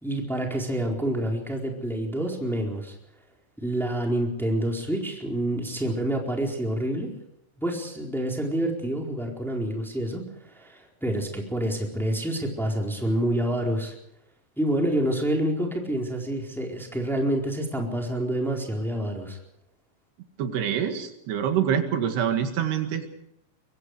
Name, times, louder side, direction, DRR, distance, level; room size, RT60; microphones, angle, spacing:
voice 1, 0.0-2.9 3.6-7.1 7.6-13.9 14.6-19.4, right 1 dB, ahead, 0 dB, 3.8 m, -28 dB
voice 2, 20.4-23.1, right 8 dB, 80° right, 6 dB, 4.0 m, -26 dB
24.0 x 23.5 x 5.0 m, 0.77 s
omnidirectional pair, 4.7 m